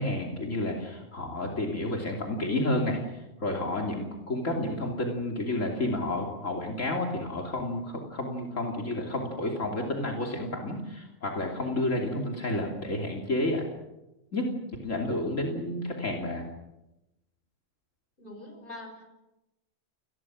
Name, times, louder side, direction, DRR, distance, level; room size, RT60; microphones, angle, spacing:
voice 1, 0.0-13.7 14.3-14.5 14.8-16.4, left 1 dB, 80° left, 0 dB, 3.4 m, -30 dB
voice 2, 18.2-19.0, left 2 dB, 45° left, 4 dB, 6.2 m, -43 dB
30.0 x 21.0 x 6.3 m, 0.96 s
omnidirectional pair, 1.3 m